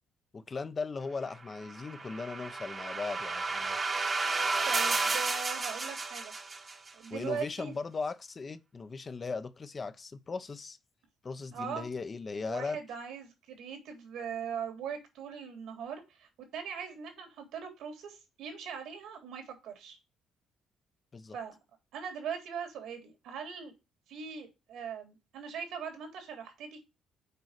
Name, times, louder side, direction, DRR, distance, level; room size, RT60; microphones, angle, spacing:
voice 1, 0.3-3.8 7.1-10.8 11.2-12.8 21.1-21.4, left 4 dB, 30° left, 0.8 m, -38 dB
sound 1, 1.6-6.9, right 3 dB, 30° right, 1.2 m, -32 dB
voice 2, 4.6-6.3 6.9-7.7 11.5-11.9 12.4-20.0 21.3-21.6 21.9-23.7 24.1-26.8, right 7 dB, 80° right, 3.4 m, -40 dB
6.8 x 4.8 x 6.5 m
cardioid pair, 105°, 0 cm